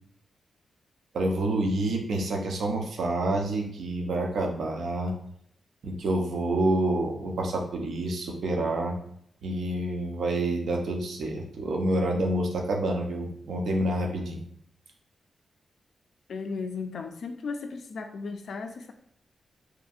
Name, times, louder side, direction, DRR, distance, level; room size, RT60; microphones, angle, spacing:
voice 1, 1.1-5.1 5.8-9.0 9.4-14.4, right 1 dB, 75° right, 1 dB, 0.6 m, -28 dB
voice 2, 16.3-18.9, left 4 dB, 60° left, 6 dB, 0.3 m, -35 dB
2.9 x 2.6 x 2.4 m, 0.71 s
wide cardioid pair, 160°, 0 cm